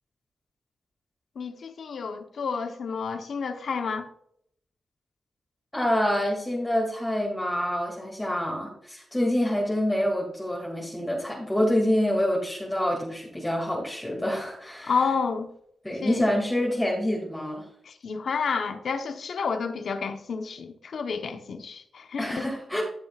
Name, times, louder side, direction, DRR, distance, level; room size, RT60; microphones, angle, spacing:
voice 1, 1.4-4.1 14.9-15.5 16.0-16.2 17.8-22.5, left 5 dB, 70° left, 1.0 m, -30 dB
voice 2, 5.7-15.0 15.8-17.6 22.2-22.8, left 1 dB, 10° left, 2.4 m, -26 dB
14.5 x 6.3 x 2.5 m
cardioid pair, 70°, 0 cm